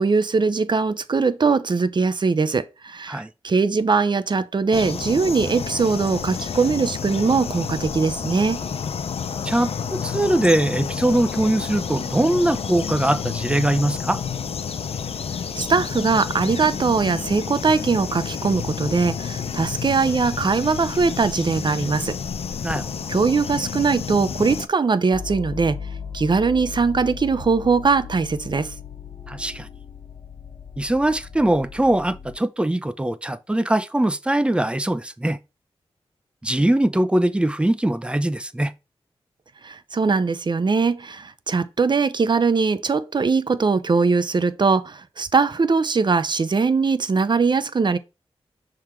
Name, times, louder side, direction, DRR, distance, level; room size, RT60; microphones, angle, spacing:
voice 1, 0.0-8.6 15.6-22.2 23.1-25.8 26.1-28.7 39.6-48.0, right 4 dB, 45° right, 0.6 m, -21 dB
sound 1, 4.7-24.7, left 6 dB, 70° left, 0.5 m, -30 dB
voice 2, 9.4-14.2 22.6-22.9 29.3-29.7 30.8-35.4 36.4-38.7, right 1 dB, 10° right, 0.6 m, -21 dB
sound 2, 25.1-32.4, left 7 dB, 45° left, 1.4 m, -37 dB
6.2 x 3.8 x 4.5 m
wide cardioid pair, 70°, 11 cm